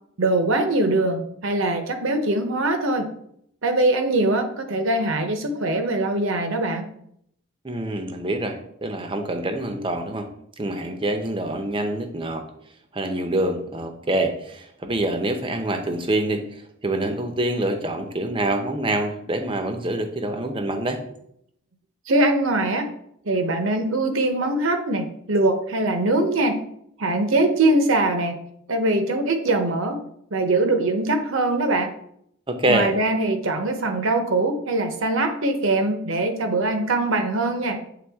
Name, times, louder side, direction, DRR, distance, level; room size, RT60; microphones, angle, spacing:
voice 1, 0.2-3.1 3.6-6.9 22.1-22.9 23.2-26.6 27.0-28.4 28.7-30.0 30.3-31.9 32.7-37.9, right 2 dB, 60° right, 6 dB, 0.8 m, -22 dB
voice 2, 7.6-10.3 10.6-12.4 12.9-21.0 32.5-32.9, right 1 dB, 25° right, 6 dB, 0.6 m, -26 dB
7.7 x 3.6 x 3.5 m, 0.70 s
head